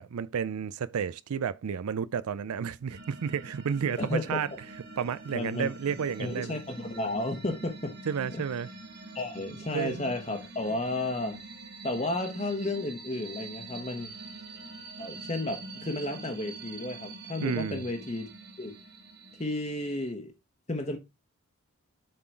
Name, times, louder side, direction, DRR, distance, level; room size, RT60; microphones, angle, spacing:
voice 1, 0.0-4.5 5.0-6.6 8.1-8.7 9.7-10.1 17.4-17.8, right 7 dB, 90° right, 0.4 m, -31 dB
sound 1, 2.9-20.1, right 3 dB, 45° right, 1.4 m, -45 dB
voice 2, 4.0-4.4 5.3-5.7 6.2-8.0 8.3-8.4 9.1-11.4 11.8-14.1 15.0-18.3 18.6-18.8 19.4-20.3 20.7-21.0, left 2 dB, 30° left, 1.0 m, -32 dB
7.7 x 3.9 x 4.6 m
head